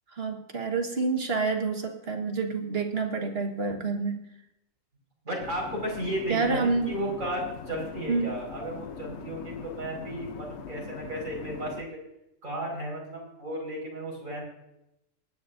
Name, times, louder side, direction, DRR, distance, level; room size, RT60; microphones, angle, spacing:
voice 1, 0.1-4.2 6.3-6.9 8.1-8.3, right 4 dB, 50° right, 3 dB, 1.8 m, -28 dB
voice 2, 5.3-11.9 12.4-14.5, right 1 dB, 90° right, -2 dB, 5.5 m, -34 dB
sound 1, 5.4-11.8, left 7 dB, 65° left, 1.0 m, -41 dB
24.5 x 9.9 x 2.6 m, 0.85 s
omnidirectional pair, 1.3 m